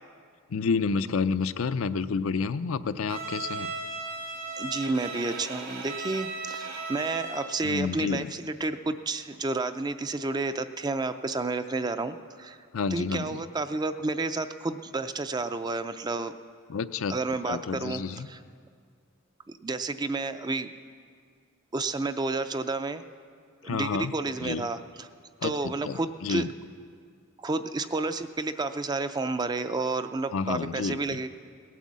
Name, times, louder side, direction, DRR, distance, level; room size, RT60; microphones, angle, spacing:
voice 1, 0.5-3.7 7.6-8.3 12.7-13.4 16.7-17.2 17.5-18.3 23.6-24.1 24.4-24.7 25.4-25.5 25.8-26.5 30.3-31.2, left 5 dB, 75° left, 11 dB, 0.5 m, -29 dB
Bowed string instrument, 3.1-7.7, right 3 dB, 60° right, 2.1 m, -36 dB
voice 2, 4.6-12.6 12.9-16.3 17.1-18.0 18.3-18.4 19.6-20.7 21.7-23.0 23.6-25.1 25.4-26.5 27.4-31.3, right 3 dB, 20° right, 10 dB, 0.4 m, -30 dB
18.0 x 9.2 x 7.4 m, 2.2 s
head